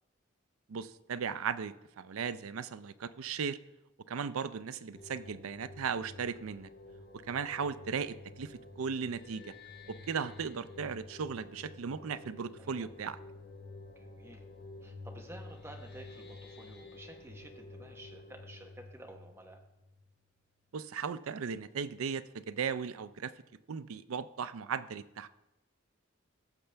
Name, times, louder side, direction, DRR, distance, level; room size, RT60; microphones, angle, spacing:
voice 1, 0.7-3.6 4.1-6.7 7.3-9.5 10.1-13.2 20.7-23.3 23.7-25.3, right 6 dB, 85° right, 13 dB, 0.5 m, -37 dB
sound 1, 4.9-20.4, left 2 dB, 50° left, 1.2 m, -51 dB
voice 2, 12.6-12.9 13.9-14.4 14.8-19.6, right 1 dB, 10° right, 2 dB, 1.0 m, -52 dB
17.0 x 6.8 x 3.4 m, 0.92 s
head